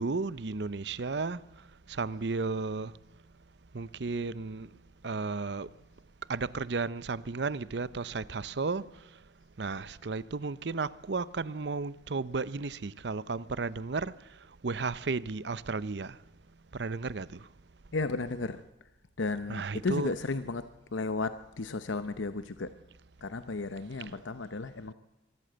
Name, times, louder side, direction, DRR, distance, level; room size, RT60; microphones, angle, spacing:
voice 1, 0.0-1.4 1.9-2.9 3.7-4.7 5.0-5.7 6.3-8.8 9.6-14.1 14.6-16.2 16.7-17.4 19.5-20.1 24.0-24.1, right 4 dB, 65° right, 0.7 m, -33 dB
voice 2, 17.9-18.6 19.2-22.7 23.2-24.9, left 3 dB, 90° left, 0.8 m, -34 dB
24.0 x 14.0 x 7.9 m
head